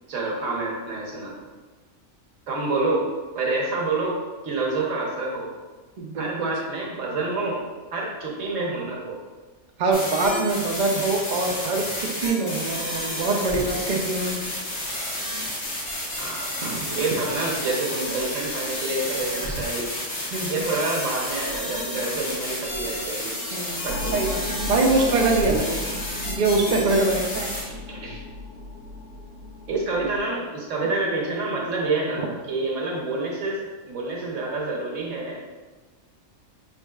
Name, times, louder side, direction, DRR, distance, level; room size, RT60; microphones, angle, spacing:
voice 1, 0.1-1.4 2.5-3.1 3.3-4.2 4.4-5.5 6.2-7.6 7.9-9.2 16.2-19.9 20.5-24.1 27.7-28.2 29.7-33.6 33.9-35.4, right 3 dB, 75° right, -2 dB, 1.3 m, -28 dB
voice 2, 6.0-6.5 9.8-14.4 16.6-16.8 20.3-20.6 23.5-27.5, right 3 dB, 55° right, 0 dB, 0.5 m, -24 dB
sound 1, 9.9-27.6, left 1 dB, 85° left, 1.6 m, -31 dB
sound 2, 23.9-30.2, left 2 dB, 50° left, 0.8 m, -35 dB
5.3 x 3.6 x 2.3 m, 1.3 s
omnidirectional pair, 1.3 m